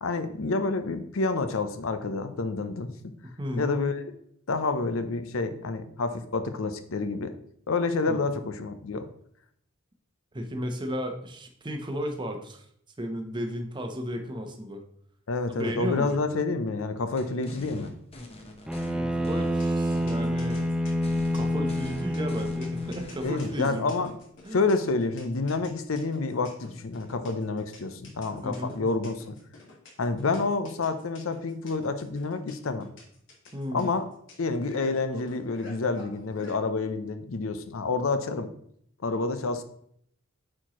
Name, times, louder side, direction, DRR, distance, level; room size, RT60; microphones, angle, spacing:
voice 1, 0.0-2.9 3.6-4.1 4.5-7.3 7.7-9.1 15.3-17.9 23.2-24.2 24.5-29.3 30.0-32.9 33.7-34.1 34.4-38.5 39.0-39.6, left 3 dB, 85° left, 9 dB, 0.7 m, -28 dB
voice 2, 3.2-3.8 8.1-8.2 10.3-12.6 13.0-14.8 15.5-16.2 19.0-20.6 21.3-23.9 24.4-24.6 27.1-27.3 28.4-28.8 33.5-33.9, equal, 25° right, 5 dB, 0.8 m, -34 dB
sound 1, 17.2-18.9 19.2-20.2 20.5-20.7 21.0-23.6, left 1 dB, 30° left, 1.0 m, -44 dB
Bowed string instrument, 18.7-23.1, equal, 5° right, 0.4 m, -28 dB
sound 2, 19.4-36.6, left 3 dB, 60° left, 1.8 m, -47 dB
8.6 x 4.5 x 3.0 m, 0.67 s
head